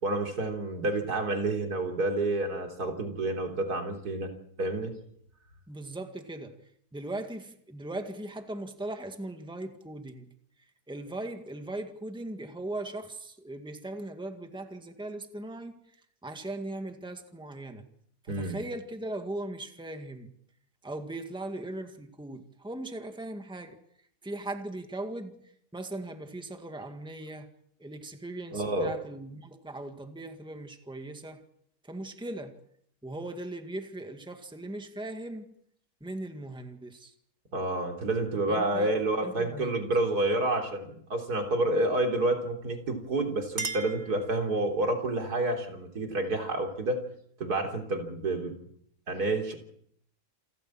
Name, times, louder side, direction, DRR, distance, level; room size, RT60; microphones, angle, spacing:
voice 1, 0.0-4.3 4.6-4.9 18.3-18.6 28.5-28.9 37.5-47.0 47.4-48.5 49.1-49.6, right 2 dB, 80° right, 4.0 m, -29 dB
voice 2, 5.7-6.6 6.9-10.3 10.9-15.8 16.2-17.9 18.2-20.3 20.8-23.8 24.2-27.5 27.8-31.4 31.8-32.6 33.0-35.5 36.0-37.1 38.5-38.9 39.2-39.9, right 2 dB, 5° right, 1.9 m, -39 dB
Chink clink, 43.0-44.9, right 4 dB, 45° right, 2.0 m, -39 dB
28.5 x 14.0 x 7.6 m
omnidirectional pair, 1.7 m